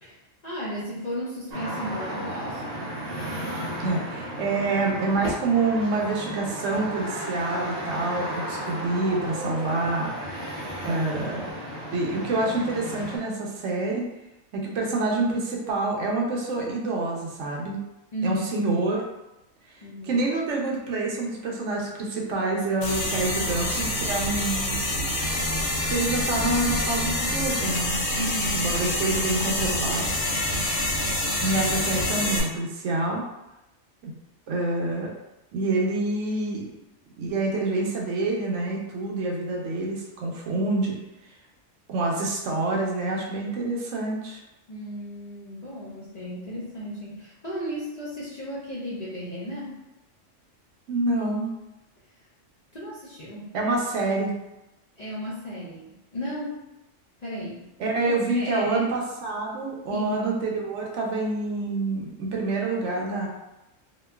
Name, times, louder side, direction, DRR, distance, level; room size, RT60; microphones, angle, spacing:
voice 1, 0.0-2.6 18.1-18.7 19.8-20.2 28.2-28.7 44.7-49.8 52.7-53.6 55.0-56.6 57.2-57.7 58.1-58.9 59.9-60.2, equal, 45° left, -8 dB, 0.5 m, -34 dB
sound 1, 1.5-13.2, equal, 45° right, 0.6 m, -34 dB
voice 2, 3.8-10.1 10.8-11.5 11.9-14.1 14.5-17.8 18.2-19.0 20.0-24.8 25.9-28.0 28.5-30.1 31.4-33.2 34.0-34.1 34.5-35.1 35.5-36.6 37.2-41.0 41.9-44.4 50.9-51.5 53.5-54.3 57.8-63.3, right 2 dB, 75° right, -1 dB, 0.9 m, -27 dB
sound 2, 22.8-32.4, left 1 dB, 80° left, 1.0 m, -26 dB
2.9 x 2.3 x 2.2 m, 0.95 s
omnidirectional pair, 1.3 m